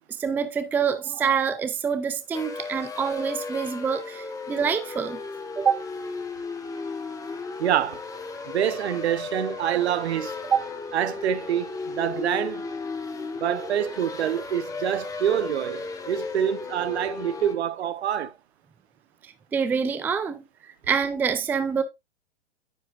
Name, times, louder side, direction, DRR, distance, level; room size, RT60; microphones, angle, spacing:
voice 1, 0.0-5.2 5.6-5.8 10.4-10.7 19.2-21.8, right 6 dB, 5° right, 0.5 m, -26 dB
sound 1, 2.3-17.5, left 4 dB, 10° left, 1.2 m, -35 dB
voice 2, 7.6-8.0 8.5-10.3 10.9-12.7 13.4-18.3, right 10 dB, 70° right, 1.0 m, -26 dB
9.8 x 7.4 x 2.5 m
hypercardioid pair, 130°, 34 cm